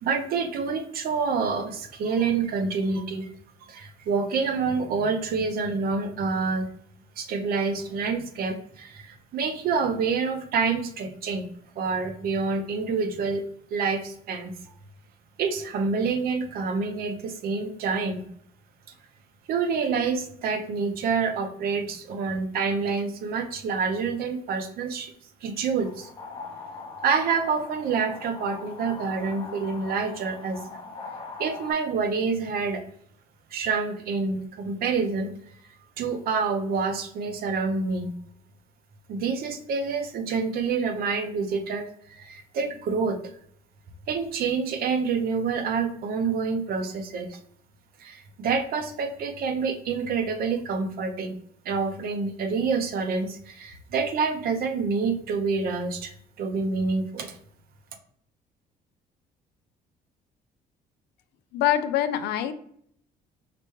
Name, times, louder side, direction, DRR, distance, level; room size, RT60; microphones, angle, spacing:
voice 1, 0.0-3.3 3.7-6.7 7.2-11.5 11.8-13.4 13.7-14.5 15.4-18.3 19.5-25.1 25.4-26.1 27.0-30.6 31.4-32.8 33.5-35.3 36.0-38.2 39.1-43.3 44.1-47.4 48.0-51.4 51.6-57.4, right 5 dB, 65° right, 6 dB, 0.7 m, -27 dB
sound 1, 25.8-31.7, left 4 dB, 30° left, 0.7 m, -41 dB
voice 2, 61.5-62.5, left 11 dB, 75° left, 10 dB, 0.4 m, -24 dB
4.9 x 2.2 x 3.0 m, 0.66 s
cardioid pair, 110°, 17 cm